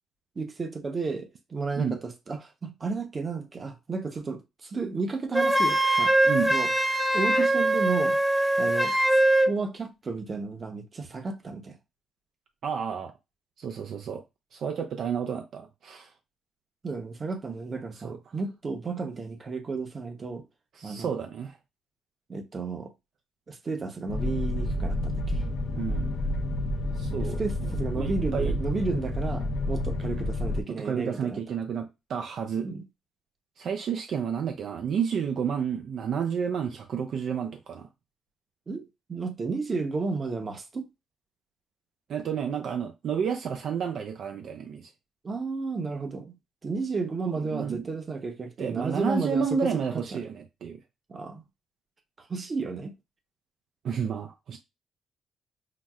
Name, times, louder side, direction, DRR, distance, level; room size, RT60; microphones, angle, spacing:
voice 1, 0.4-6.2 6.5-6.7 7.1-8.2 8.6-9.2 9.5-11.8 16.8-20.4 20.8-21.1 22.3-22.9 23.5-25.4 27.1-31.4 32.6-32.8 38.7-40.9 45.2-46.4 46.6-49.7 50.1-50.3 51.1-51.4 52.3-52.9, right 4 dB, 35° right, 0.8 m, -33 dB
Wind instrument woodwind instrument, 5.3-9.5, right 1 dB, 5° right, 0.6 m, -22 dB
voice 2, 12.6-13.1 13.6-14.2 14.5-16.1 18.0-18.2 20.8-21.6 25.7-26.1 27.0-27.4 27.9-28.6 30.7-32.7 33.6-37.9 42.1-44.9 47.4-47.8 48.6-50.8 53.8-54.6, right 7 dB, 65° right, 0.5 m, -31 dB
sound 1, 24.1-30.6, left 1 dB, 80° left, 0.6 m, -29 dB
5.8 x 2.0 x 2.4 m
cardioid pair, 90°, 0 cm